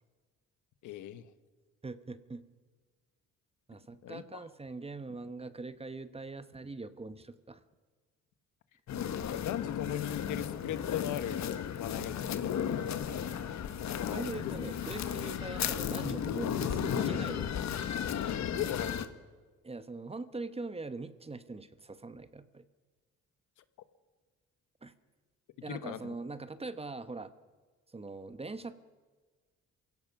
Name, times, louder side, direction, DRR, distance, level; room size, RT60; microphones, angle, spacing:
voice 1, 0.8-1.3 4.0-4.2 9.2-11.4 11.8-12.6 13.9-14.5 18.5-18.9 25.7-26.1, left 11 dB, 80° left, 12 dB, 1.2 m, -38 dB
voice 2, 1.8-2.4 3.7-7.6 14.1-17.8 18.5-18.6 19.6-22.6 24.8-24.9 25.6-27.3 27.9-28.7, right 3 dB, 20° right, 12 dB, 1.1 m, -42 dB
sound 1, 8.9-19.1, left 9 dB, 65° left, 1.4 m, -34 dB
27.5 x 17.0 x 6.0 m, 1.4 s
cardioid pair, 90°, 30 cm